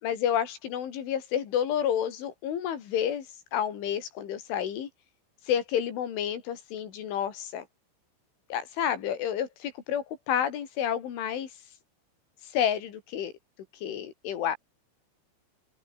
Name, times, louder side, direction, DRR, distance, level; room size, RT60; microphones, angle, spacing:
voice 1, 0.0-4.9 5.5-7.7 8.5-11.5 12.4-13.3 13.8-14.6, left 9 dB, 75° left, 5.6 m, -30 dB
open air
omnidirectional pair, 5.6 m